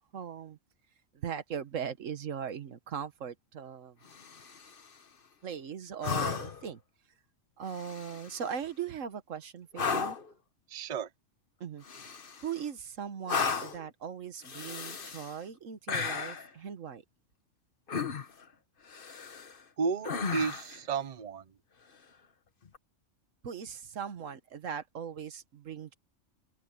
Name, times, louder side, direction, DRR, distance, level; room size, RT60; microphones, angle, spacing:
voice 1, 0.1-0.6 1.1-4.0 5.4-6.8 7.6-10.2 11.6-11.8 12.4-17.0 23.4-25.9, right 7 dB, 80° right, 1.5 m, -39 dB
sound 1, 4.1-4.8 6.0-6.7 7.7-8.4 9.7-10.3 11.8-12.6 13.3-13.9 14.4-15.3 15.9-16.5 17.9-18.4 18.9-19.6 20.0-20.8 22.7-22.8, left 5 dB, 45° left, 1.3 m, -35 dB
voice 2, 10.7-11.1 19.8-21.4, right 5 dB, 40° right, 0.8 m, -32 dB
omnidirectional pair, 1.3 m